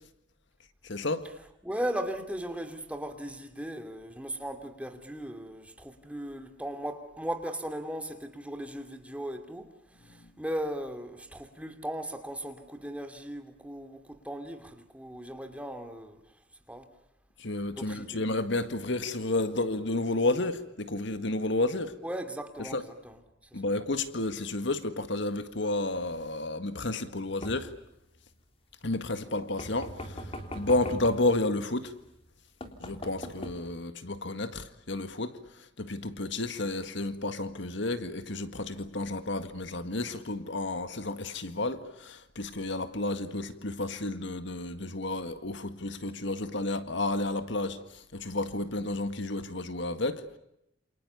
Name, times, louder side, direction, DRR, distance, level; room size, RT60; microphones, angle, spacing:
voice 1, 0.8-1.3 17.4-21.9 22.7-22.8 23.5-27.7 28.8-30.2 30.6-31.9 32.8-35.4 35.8-50.4, left 2 dB, 65° left, 1.9 m, -31 dB
voice 2, 1.6-9.7 10.0-16.2 16.7-16.9 17.7-18.2 22.0-23.2 29.2-29.3, right 1 dB, 5° right, 2.7 m, -37 dB
sound 1, 27.4-27.9 29.6-31.3 32.1-32.3 32.6-33.6, equal, 30° left, 3.5 m, -40 dB
28.5 x 28.0 x 7.0 m
head